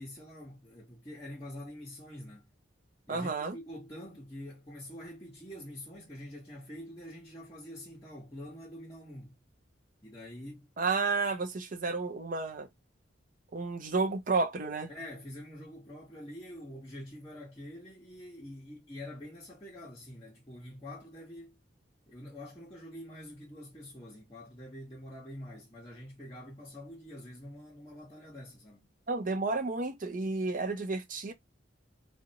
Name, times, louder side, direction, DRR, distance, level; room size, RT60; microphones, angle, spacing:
voice 1, 0.0-2.5 3.1-9.4 10.0-10.7 14.9-21.6 22.1-28.9, left 1 dB, 20° left, 1.0 m, -46 dB
voice 2, 3.1-3.6 10.8-12.7 13.5-14.9 29.1-31.3, right 3 dB, 45° right, 0.5 m, -31 dB
2.6 x 2.0 x 2.7 m
head